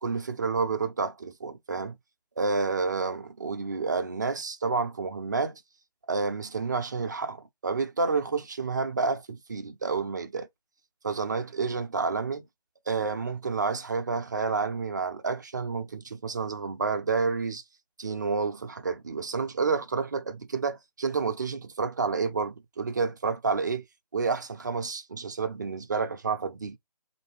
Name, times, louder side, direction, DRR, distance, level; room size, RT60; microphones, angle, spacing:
voice 1, 0.0-2.0 2.4-5.6 6.1-10.5 11.0-12.4 12.9-17.6 18.0-23.8 24.1-26.8, right 4 dB, 25° right, 0.4 m, -29 dB
3.3 x 2.6 x 4.5 m
figure-of-eight pair, 155°, 21 cm